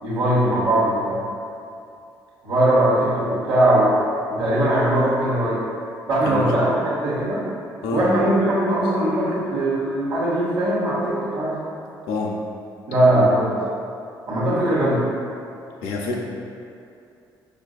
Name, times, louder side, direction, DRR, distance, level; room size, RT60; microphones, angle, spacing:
voice 1, 0.0-1.2 2.4-4.0 4.3-5.6 6.1-7.4 7.9-11.6 12.9-13.5 14.3-15.0, right 1 dB, 75° right, -11 dB, 1.0 m, -20 dB
voice 2, 6.2-6.5 7.8-8.0 12.1-12.4 13.1-13.3 15.8-16.2, left 3 dB, 85° left, -2 dB, 0.4 m, -27 dB
5.0 x 2.5 x 2.3 m, 2.6 s
supercardioid pair, 65°, 9 cm